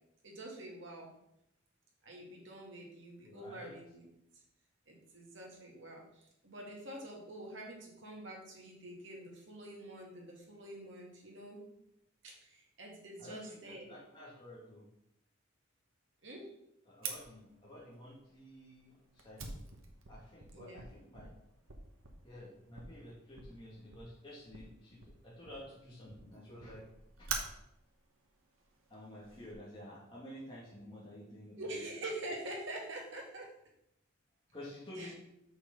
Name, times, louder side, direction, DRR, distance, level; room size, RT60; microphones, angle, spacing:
voice 1, 0.2-1.1 2.0-4.0 4.3-4.4 4.9-11.6 12.2-13.9 16.2-16.5 20.5-20.8 31.6-33.5 35.0-35.1, right 1 dB, 65° right, -1 dB, 2.4 m, -46 dB
voice 2, 3.2-3.8 13.2-14.9 16.9-19.6 20.1-21.3 22.2-26.8 27.2-27.3 28.9-31.6 34.5-35.2, left 1 dB, 25° left, -7 dB, 2.2 m, -51 dB
Fire, 17.0-29.5, right 5 dB, 80° right, 1.4 m, -48 dB
6.7 x 6.4 x 5.3 m, 0.80 s
head